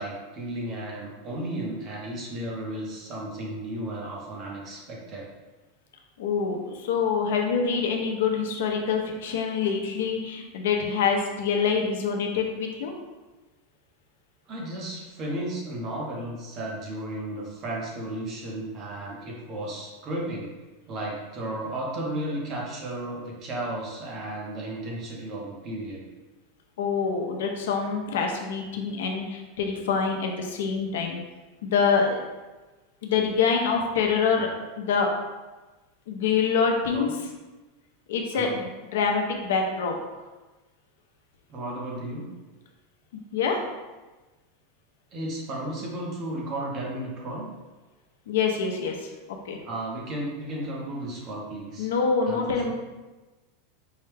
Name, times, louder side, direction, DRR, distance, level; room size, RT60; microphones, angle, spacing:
voice 1, 0.0-5.3 14.5-20.5 20.9-26.0 36.9-37.1 38.3-38.6 41.5-42.3 45.1-47.5 49.6-51.9 52.3-52.7, right 1 dB, 25° right, -3 dB, 0.7 m, -34 dB
voice 2, 6.2-12.9 26.8-31.2 31.6-32.2 33.0-34.5 34.8-35.1 36.1-37.1 38.1-40.0 43.3-43.6 48.3-49.1 49.4-49.6 51.8-52.7, left 5 dB, 85° left, 2 dB, 0.6 m, -25 dB
4.7 x 2.2 x 3.3 m, 1.2 s
supercardioid pair, 175°, 0 cm